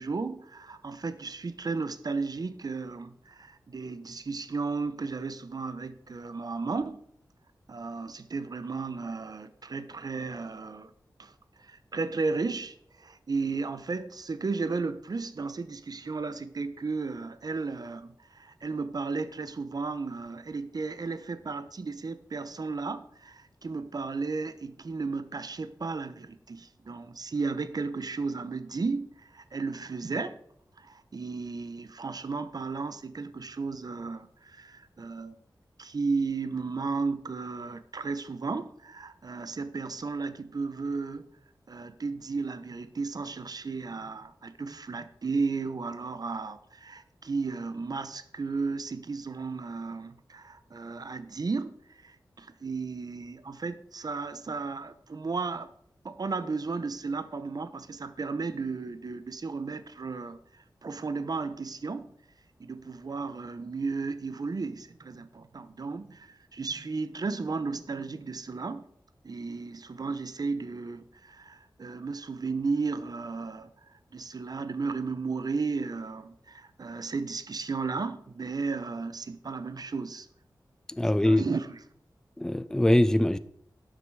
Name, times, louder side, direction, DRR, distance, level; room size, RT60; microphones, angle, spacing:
voice 1, 0.0-7.0 7.7-10.9 11.2-11.3 11.6-30.4 30.8-35.4 35.8-41.2 41.7-55.7 56.0-60.4 60.8-62.1 62.6-68.8 69.2-73.7 74.1-80.3 81.1-81.8, right 4 dB, 55° right, 0.9 m, -34 dB
voice 2, 81.0-81.4 82.4-83.4, left 1 dB, 10° left, 0.6 m, -22 dB
12.0 x 7.9 x 4.8 m
wide cardioid pair, 85°, 8 cm